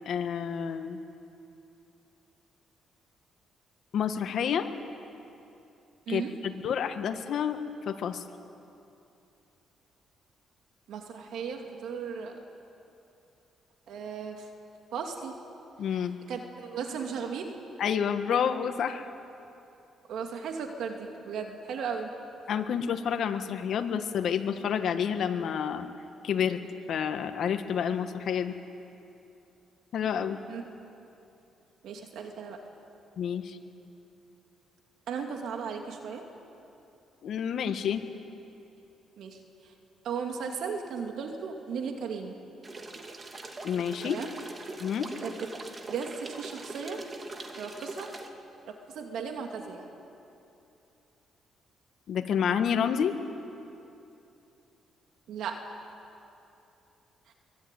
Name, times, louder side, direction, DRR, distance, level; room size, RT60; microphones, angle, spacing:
voice 1, 0.1-1.0 3.9-4.7 6.1-7.6 7.9-8.2 15.8-16.1 17.8-19.1 22.5-25.9 26.2-26.6 26.9-28.6 29.9-30.4 33.2-33.6 37.2-38.1 43.6-44.2 44.8-45.1 52.1-53.1, left 8 dB, 65° left, 7 dB, 1.7 m, -29 dB
voice 2, 10.9-12.4 13.9-14.5 14.9-15.4 15.8-17.6 20.1-22.1 30.5-30.6 31.8-32.6 35.1-36.3 39.2-39.7 40.0-42.4 44.0-44.3 45.2-45.3 45.9-47.0 47.6-48.1 48.7-49.9 55.3-55.7 57.3-57.4, right 6 dB, 75° right, 3 dB, 2.5 m, -36 dB
sound 1, 42.6-48.3, right 2 dB, 35° right, 2.5 m, -42 dB
24.0 x 21.5 x 9.2 m, 2.8 s
cardioid pair, 90°, 0 cm